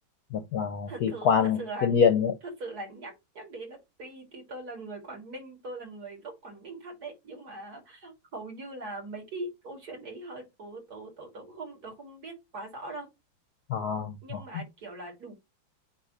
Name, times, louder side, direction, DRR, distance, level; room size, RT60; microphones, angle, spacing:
voice 1, 0.3-2.3 13.7-14.4, left 6 dB, 60° left, 1.0 m, -25 dB
voice 2, 0.8-2.0 2.4-13.1 14.2-15.3, right 2 dB, 50° right, 2.9 m, -41 dB
8.4 x 2.9 x 4.2 m
omnidirectional pair, 2.2 m